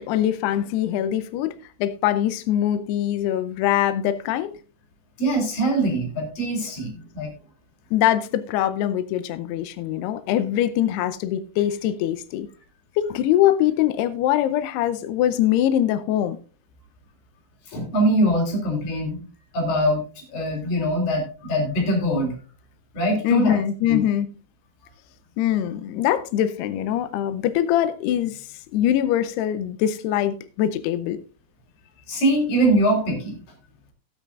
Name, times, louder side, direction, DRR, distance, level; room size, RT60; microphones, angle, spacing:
voice 1, 0.0-1.5 1.8-4.6 7.9-12.5 13.0-16.4 23.2-24.3 25.4-31.2, left 11 dB, 85° left, 2.3 m, -23 dB
voice 2, 5.2-7.3 17.7-19.2 19.5-22.3 22.9-23.6 23.9-24.0 32.1-33.4, right 1 dB, 50° left, 5.1 m, -23 dB
17.5 x 8.9 x 2.4 m
omnidirectional pair, 5.6 m